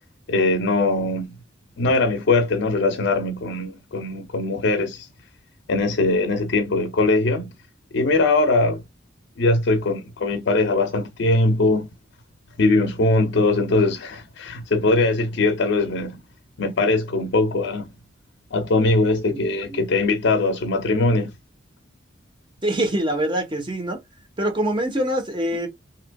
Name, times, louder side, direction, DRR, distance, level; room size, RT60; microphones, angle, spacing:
voice 1, 0.3-1.3 1.8-5.1 5.7-7.5 7.9-8.8 9.4-11.9 12.6-16.2 16.6-17.9 18.5-21.3, left 2 dB, 65° left, 0.5 m, -21 dB
voice 2, 22.6-24.0 24.4-25.7, right 1 dB, 25° right, 1.0 m, -24 dB
3.3 x 2.9 x 2.2 m
head